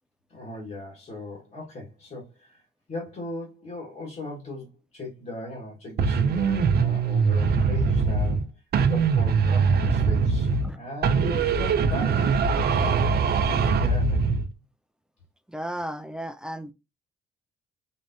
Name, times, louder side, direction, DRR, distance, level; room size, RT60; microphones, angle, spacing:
voice 1, 0.3-2.6 2.9-4.7 4.9-8.6 8.9-12.3 12.7-12.9 13.6-14.2, left 1 dB, 45° left, 1.5 m, -38 dB
sound 1, 6.0-8.4 8.7-10.7 11.0-14.5, right 5 dB, 55° right, 0.6 m, -22 dB
voice 2, 15.5-16.7, right 1 dB, 5° right, 0.4 m, -34 dB
4.1 x 3.3 x 2.6 m
cardioid pair, 90°, 20 cm